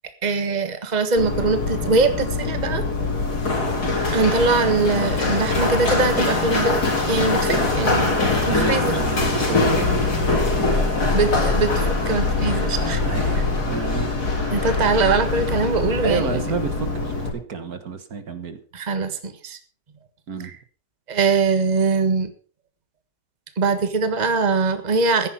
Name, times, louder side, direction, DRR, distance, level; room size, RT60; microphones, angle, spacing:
voice 1, 0.2-2.8 4.1-8.2 8.5-9.0 11.1-13.0 14.5-16.4 18.7-19.6 20.4-20.6 21.1-22.3 23.6-25.3, right 4 dB, 25° right, 9 dB, 1.5 m, -22 dB
Run, 1.2-17.3, left 3 dB, 65° left, 4.0 m, -22 dB
voice 2, 8.5-8.8 9.4-10.0 13.1-14.1 16.0-18.6 20.3-20.5, right 5 dB, 60° right, 9 dB, 1.9 m, -30 dB
15.0 x 10.5 x 5.6 m, 0.40 s
omnidirectional pair, 1.8 m